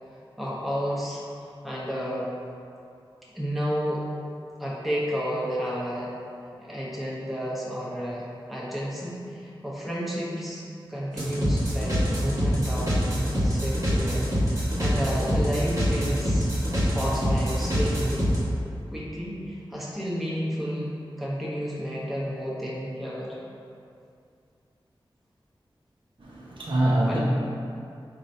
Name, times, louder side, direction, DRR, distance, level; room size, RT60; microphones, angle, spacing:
voice 1, 0.4-1.2 1.6-2.3 3.3-4.0 4.6-6.1 6.6-10.6 10.9-13.0 13.3-18.3 18.9-23.4 27.1-27.2, equal, ahead, -6 dB, 0.9 m, -31 dB
sound 1, 11.2-18.4, equal, 40° right, 1.4 m, -25 dB
voice 2, 26.2-27.2, right 1 dB, 65° right, -7 dB, 0.9 m, -24 dB
3.9 x 2.7 x 4.2 m, 2.4 s
wide cardioid pair, 50°, 9 cm